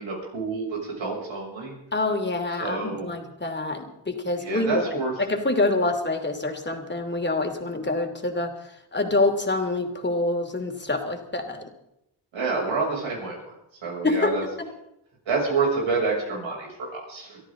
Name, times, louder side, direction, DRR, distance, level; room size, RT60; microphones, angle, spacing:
voice 1, 0.0-1.7 2.6-3.1 4.4-5.1 12.3-13.4 13.8-14.4 15.3-17.4, right 4 dB, 85° right, -2 dB, 6.9 m, -28 dB
voice 2, 1.9-8.5 8.9-11.7 14.0-14.7, left 2 dB, 25° left, 5 dB, 2.7 m, -26 dB
23.5 x 13.0 x 3.8 m, 0.83 s
cardioid pair, 80°, 45 cm